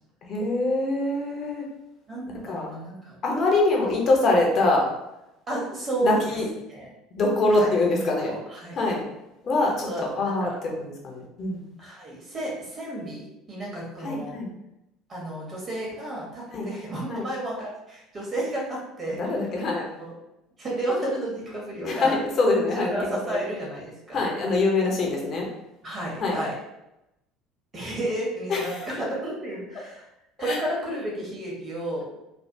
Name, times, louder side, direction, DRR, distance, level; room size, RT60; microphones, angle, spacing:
voice 1, 0.3-1.6 2.5-2.7 3.2-4.9 6.0-6.5 7.2-8.3 8.8-9.0 9.4-11.6 14.0-14.5 16.5-16.7 17.1-17.2 19.2-19.9 21.8-23.0 23.3-23.4 24.1-25.5 26.2-26.4 28.5-28.9 30.4-30.6, left 2 dB, 45° left, -1 dB, 0.8 m, -24 dB
voice 2, 2.1-3.2 5.5-6.2 6.7-6.9 7.5-7.7 8.2-8.8 9.9-10.6 11.8-14.4 15.1-19.2 20.0-20.1 20.6-22.2 22.7-24.2 25.8-26.6 27.7-30.1 30.4-32.0, right 1 dB, 35° right, -4 dB, 1.4 m, -32 dB
3.3 x 2.4 x 2.7 m, 0.89 s
figure-of-eight pair, 65°, 0 cm